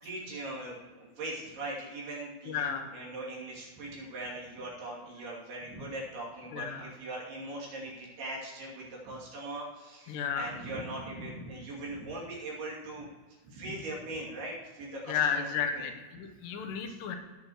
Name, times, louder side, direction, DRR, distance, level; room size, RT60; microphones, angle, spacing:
voice 1, 0.0-13.1 13.4-15.5 15.7-15.9 16.9-17.0, right 2 dB, 70° right, -5 dB, 4.7 m, -40 dB
voice 2, 2.5-2.9 6.5-6.9 10.1-10.5 15.1-17.2, left 7 dB, 85° left, 5 dB, 3.1 m, -32 dB
17.0 x 7.4 x 3.1 m, 1.3 s
omnidirectional pair, 4.8 m